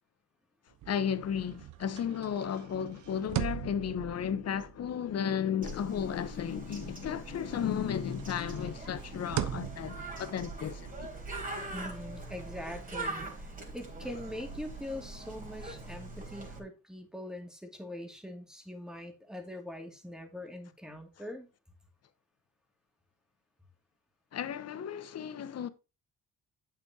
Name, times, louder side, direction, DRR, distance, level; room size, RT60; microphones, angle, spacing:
sound 1, 0.7-7.2 7.5-12.9, right 11 dB, 75° right, 0.9 m, -42 dB
voice 1, 0.9-11.1 24.3-25.7, left 8 dB, 55° left, 1.1 m, -34 dB
Bird, 5.6-16.6, right 2 dB, 30° right, 4.0 m, -42 dB
voice 2, 11.7-21.5, left 1 dB, ahead, 2.5 m, -43 dB
8.6 x 7.0 x 2.9 m
cardioid pair, 90°, 30 cm